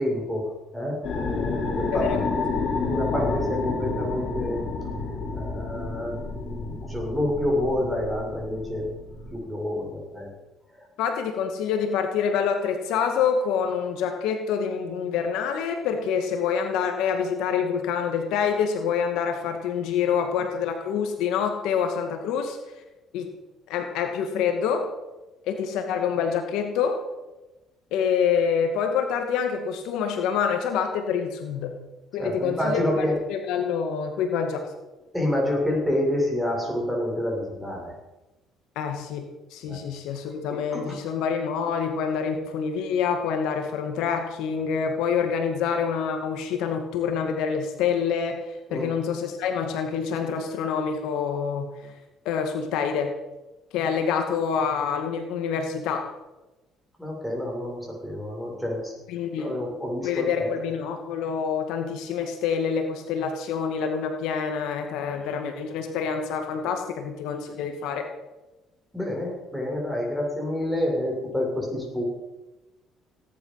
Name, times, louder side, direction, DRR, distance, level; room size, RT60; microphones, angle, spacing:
voice 1, 0.0-2.3 2.9-4.6 4.9-8.9 9.3-10.3 32.2-33.1 35.1-37.9 39.7-39.8 40.5-41.0 48.7-48.9 57.0-59.0 59.4-60.5 68.9-72.0, left 1 dB, ahead, -2 dB, 7.2 m, -28 dB
sound 1, 1.0-9.3, left 3 dB, 50° left, 5.7 m, -30 dB
voice 2, 1.9-2.4 11.0-22.6 23.1-23.3 23.7-24.9 25.4-27.0 27.9-31.7 32.1-34.7 38.8-39.3 39.5-48.4 48.7-51.9 52.3-53.1 53.7-56.0 59.1-59.6 60.0-68.1, left 6 dB, 80° left, 5 dB, 2.0 m, -26 dB
18.0 x 11.0 x 5.8 m, 1.0 s
supercardioid pair, 85°, 0 cm